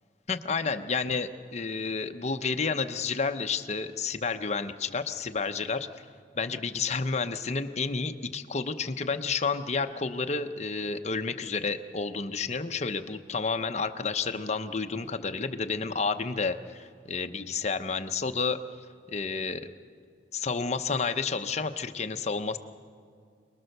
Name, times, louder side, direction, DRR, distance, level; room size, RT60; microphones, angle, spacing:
voice 1, 0.3-6.1 6.3-18.6 19.1-19.6 20.3-22.6, left 4 dB, 40° left, 8 dB, 0.8 m, -30 dB
27.0 x 20.0 x 6.7 m, 2.2 s
head